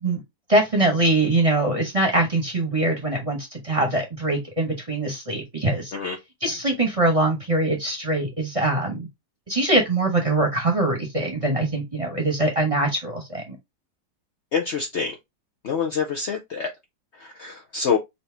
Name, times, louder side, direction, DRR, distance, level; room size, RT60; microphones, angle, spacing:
voice 1, 0.5-5.9 6.4-9.1 9.5-13.6, right 2 dB, 25° right, 0.9 m, -23 dB
voice 2, 14.5-15.1 15.6-16.7 17.4-18.0, left 6 dB, 60° left, 0.7 m, -25 dB
4.2 x 2.7 x 3.4 m
omnidirectional pair, 1.8 m